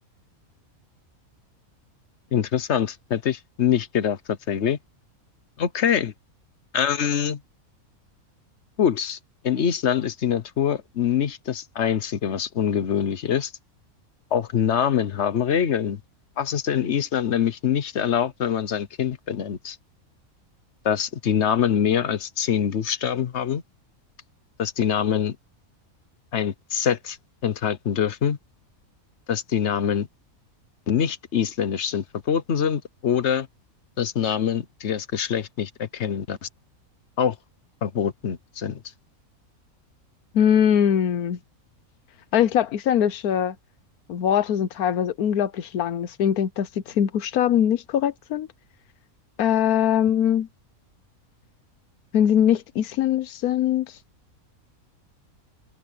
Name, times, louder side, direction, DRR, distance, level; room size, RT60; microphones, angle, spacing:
voice 1, 2.3-4.8 5.6-6.1 6.7-7.4 8.8-9.2 9.4-13.5 14.3-16.0 16.4-19.8 20.8-23.6 24.6-25.4 26.3-27.2 27.4-28.4 29.3-30.1 30.9-33.5 34.0-36.5 37.2-37.4 37.8-38.8, left 8 dB, 55° left, 1.2 m, -24 dB
voice 2, 40.3-41.4 42.3-43.6 44.1-48.5 49.4-50.5 52.1-53.9, left 9 dB, 85° left, 1.3 m, -22 dB
omnidirectional pair, 1.5 m